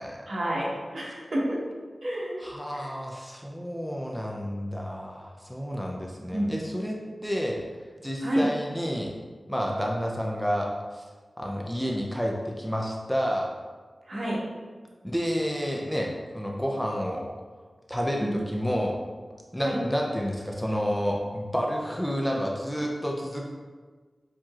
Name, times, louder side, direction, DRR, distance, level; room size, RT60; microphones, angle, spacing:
voice 1, 0.3-1.6 2.0-2.4 2.7-2.9 6.3-6.5 8.2-8.5 14.1-14.4 18.2-18.3 19.6-19.8, right 1 dB, 60° right, -5 dB, 1.3 m, -29 dB
voice 2, 2.4-7.6 8.0-9.1 9.5-11.0 11.4-13.5 15.0-17.2 17.9-19.0 19.5-23.5, equal, 5° left, -1 dB, 0.5 m, -30 dB
7.3 x 2.9 x 2.4 m, 1.4 s
wide cardioid pair, 70°, 0 cm